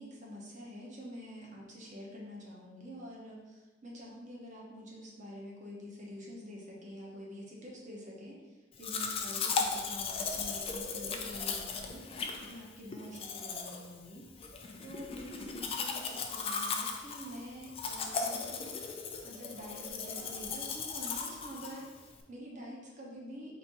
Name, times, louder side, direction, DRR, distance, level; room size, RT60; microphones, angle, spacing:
voice 1, 0.0-14.3 14.8-18.8 19.2-23.6, equal, 40° right, -4 dB, 1.0 m, -47 dB
Domestic sounds home sounds, 8.8-22.2, left 5 dB, 30° left, 0.4 m, -37 dB
4.3 x 2.7 x 4.0 m, 1.2 s
head